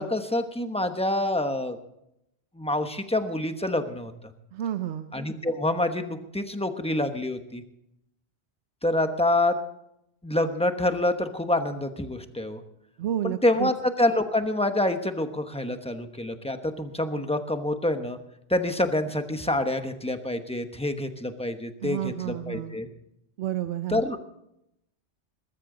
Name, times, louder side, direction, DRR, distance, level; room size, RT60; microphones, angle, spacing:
voice 1, 0.0-1.8 2.5-4.1 5.1-7.6 8.8-9.6 10.2-12.6 13.2-18.2 18.5-22.9 23.9-24.2, left 1 dB, 5° left, 7 dB, 1.0 m, -27 dB
voice 2, 4.5-5.1 13.0-13.7 21.8-22.8 23.4-24.1, right 11 dB, 90° right, 9 dB, 1.0 m, -30 dB
20.5 x 13.5 x 3.9 m, 0.80 s
omnidirectional pair, 1.1 m